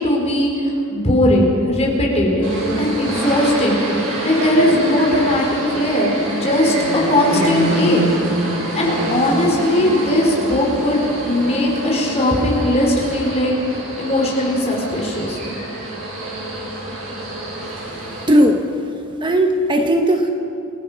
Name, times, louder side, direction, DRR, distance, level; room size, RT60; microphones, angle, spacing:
voice 1, 0.0-2.5 2.8-3.8 4.2-5.5 5.7-6.7 7.1-8.0 8.7-13.5 14.0-15.4, left 1 dB, 30° left, -2 dB, 4.6 m, -18 dB
sound 1, 2.4-18.2, right 1 dB, 70° right, 6.7 m, -26 dB
voice 2, 18.3-18.9 19.2-20.3, equal, 25° right, 4 dB, 1.0 m, -16 dB
28.0 x 16.0 x 5.7 m, 2.8 s
head